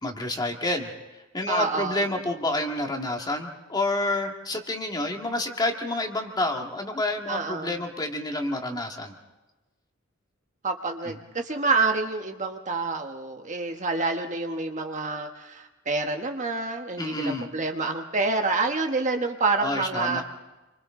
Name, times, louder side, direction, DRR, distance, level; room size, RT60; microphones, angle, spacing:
voice 1, 0.0-9.1 11.0-11.2 17.0-17.5 19.6-20.2, left 2 dB, 20° left, 2 dB, 2.0 m, -29 dB
voice 2, 1.5-2.0 7.3-7.7 10.6-20.2, right 3 dB, 40° right, 4 dB, 1.3 m, -27 dB
29.5 x 24.5 x 3.8 m, 1.1 s
head